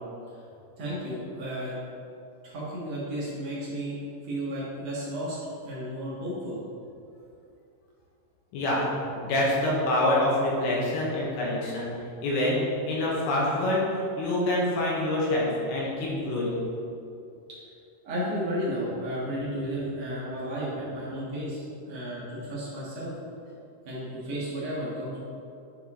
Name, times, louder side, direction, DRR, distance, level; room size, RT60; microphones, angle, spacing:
voice 1, 0.8-1.8 2.4-4.0 4.2-5.4 5.6-6.6 18.0-23.1 23.8-25.2, equal, 75° right, -8 dB, 1.5 m, -33 dB
voice 2, 8.5-8.9 9.2-11.9 12.2-16.6, left 1 dB, 75° left, -5 dB, 3.3 m, -26 dB
10.5 x 4.5 x 3.6 m, 2.6 s
omnidirectional pair, 5.7 m